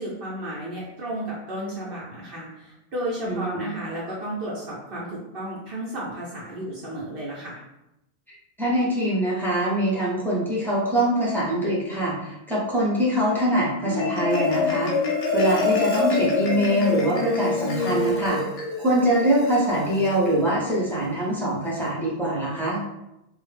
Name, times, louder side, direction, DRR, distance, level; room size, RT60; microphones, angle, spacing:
voice 1, 0.0-7.6, right 1 dB, 60° right, -6 dB, 0.8 m, -33 dB
voice 2, 3.3-3.6 8.6-14.9 15.3-18.4 18.8-22.8, right 1 dB, ahead, -7 dB, 0.5 m, -23 dB
Marimba xylophone, 13.7-20.3, left 4 dB, 90° left, 0.9 m, -26 dB
2.3 x 2.0 x 3.2 m, 0.90 s
omnidirectional pair, 1.2 m